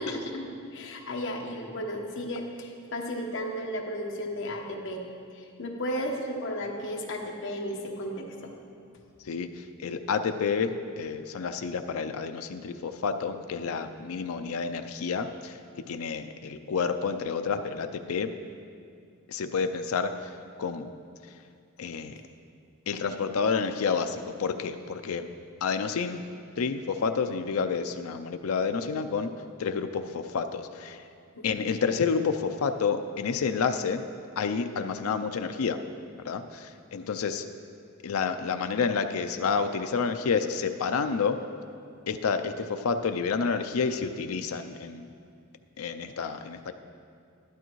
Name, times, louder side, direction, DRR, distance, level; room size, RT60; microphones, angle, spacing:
voice 1, 0.0-5.0 5.3-8.5 31.3-31.6, equal, 60° left, 0 dB, 1.2 m, -34 dB
voice 2, 9.2-15.6 15.9-18.3 19.3-20.9 21.8-22.2 22.9-25.3 25.6-26.2 26.6-29.3 29.6-31.1 31.4-34.0 34.4-35.8 36.2-37.5 38.0-41.4 42.1-45.1 45.8-46.7, left 5 dB, 80° left, 7 dB, 0.4 m, -29 dB
12.0 x 11.5 x 3.1 m, 2.4 s
head